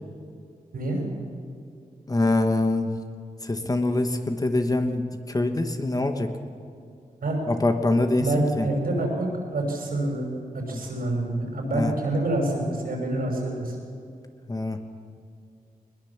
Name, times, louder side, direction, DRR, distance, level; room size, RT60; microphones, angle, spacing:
voice 1, 0.7-1.0 7.2-7.4 8.2-13.8, right 2 dB, 80° right, 0 dB, 5.9 m, -27 dB
voice 2, 2.1-3.0 3.4-6.3 7.5-8.7 10.7-10.8 11.2-11.3 11.7-11.9 14.5-14.8, left 2 dB, 25° left, 6 dB, 1.3 m, -24 dB
21.5 x 20.5 x 7.3 m, 2.4 s
wide cardioid pair, 125°, 15 cm